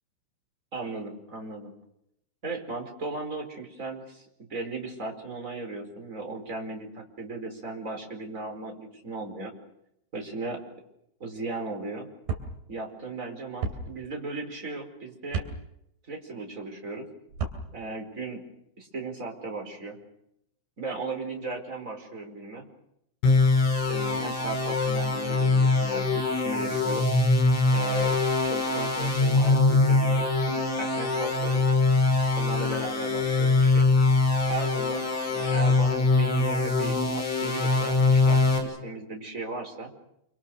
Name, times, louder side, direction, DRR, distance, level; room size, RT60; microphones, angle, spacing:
voice 1, 0.7-1.7 2.4-9.5 10.1-10.6 11.2-12.1 12.7-15.4 16.1-17.1 17.7-18.4 18.8-20.0 20.8-22.6 23.9-27.1 27.7-28.2 28.4-31.6 32.4-33.9 34.5-39.9, right 3 dB, 15° right, 3 dB, 4.4 m, -36 dB
sound 1, 12.3-12.5 13.6-13.8 15.3-15.5 17.3-17.6, right 5 dB, 45° right, 4.0 m, -30 dB
sound 2, 23.2-38.6, left 3 dB, 70° left, 8.7 m, -23 dB
28.5 x 25.5 x 6.5 m, 0.80 s
omnidirectional pair, 5.9 m